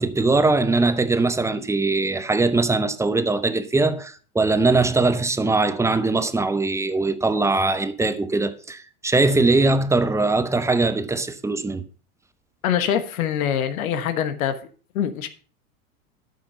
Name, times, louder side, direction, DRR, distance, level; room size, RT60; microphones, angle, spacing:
voice 1, 0.0-11.8, right 3 dB, 5° right, 0.7 m, -21 dB
voice 2, 12.6-14.6 14.9-15.3, left 9 dB, 70° left, 1.3 m, -24 dB
12.0 x 5.7 x 5.5 m
hypercardioid pair, 105°, 43 cm